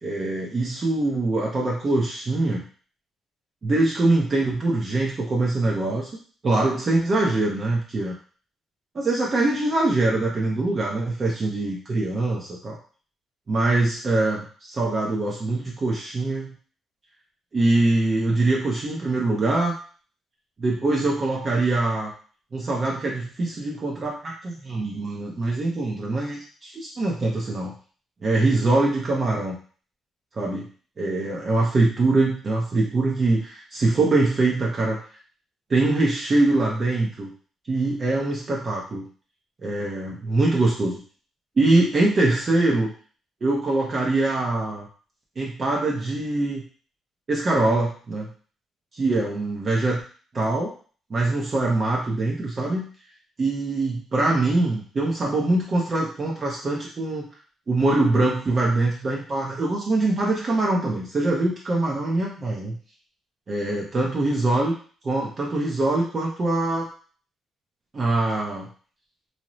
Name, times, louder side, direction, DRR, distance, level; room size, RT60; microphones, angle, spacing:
voice 1, 0.0-2.6 3.6-6.1 6.4-8.1 8.9-12.8 13.5-16.5 17.5-19.7 20.6-22.1 22.5-27.7 28.2-29.6 30.3-30.7 31.0-35.0 35.7-37.3 37.7-39.1 39.6-41.0 41.6-42.9 43.4-44.9 45.4-46.6 47.3-48.3 48.9-50.0 50.3-50.7 51.1-52.9 53.4-57.3 57.7-62.8 63.5-64.7 65.0-66.9 67.9-68.7, right 2 dB, 40° right, -3 dB, 0.6 m, -23 dB
2.7 x 2.0 x 3.0 m, 0.41 s
cardioid pair, 90°, 0 cm